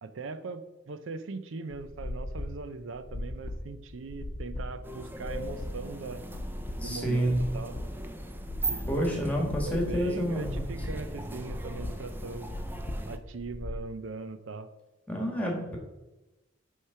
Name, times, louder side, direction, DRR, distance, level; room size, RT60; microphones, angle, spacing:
voice 1, 0.0-6.2 6.8-7.7 8.7-9.2 9.7-12.5 13.1-14.7, right 4 dB, 85° right, 12 dB, 0.6 m, -40 dB
sound 1, 1.7-13.8, left 1 dB, 45° left, 0.7 m, -39 dB
sound 2, 4.8-13.2, right 2 dB, 10° right, 0.5 m, -39 dB
voice 2, 6.8-7.4 8.9-10.6 15.1-15.8, equal, 5° left, 0 dB, 1.5 m, -29 dB
8.8 x 3.3 x 5.6 m, 1.0 s
head